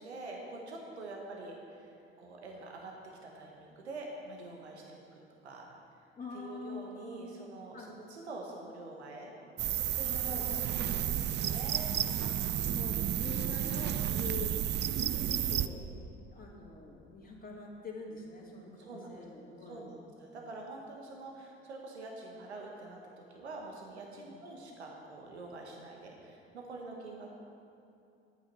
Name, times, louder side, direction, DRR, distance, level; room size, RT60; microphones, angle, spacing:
voice 1, 0.0-5.7 6.3-9.3 9.9-11.9 18.8-19.2 19.7-27.4, right 2 dB, 85° right, 0 dB, 1.3 m, -46 dB
voice 2, 6.2-7.3 7.7-7.9 10.0-11.3 12.2-12.3 12.6-14.6 15.2-20.0 24.2-24.4, left 3 dB, 25° left, -2 dB, 2.6 m, -45 dB
sound 1, 9.6-15.7, right 10 dB, 35° right, 0.5 m, -32 dB
11.0 x 8.8 x 5.4 m, 2.7 s
hypercardioid pair, 60°, 32 cm